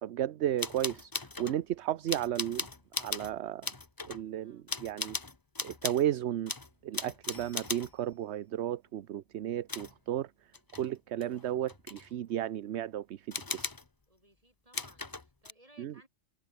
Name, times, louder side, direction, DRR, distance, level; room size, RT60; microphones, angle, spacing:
voice 1, 0.0-2.7 3.0-3.7 4.0-5.2 5.6-6.5 6.8-10.3 10.8-13.7 15.8-15.9, right 11 dB, 65° right, 0.9 m, -34 dB
sound 1, 0.6-1.6 2.1-3.4 3.6-4.2 4.7-6.0 6.5-7.9 9.7-10.0 10.5-10.9 11.2-12.1 13.3-13.9 14.7-15.5, left 3 dB, 20° left, 0.8 m, -38 dB
voice 2, 4.4-4.7 14.1-16.1, right 1 dB, 30° right, 8.0 m, -62 dB
omnidirectional pair, 1.3 m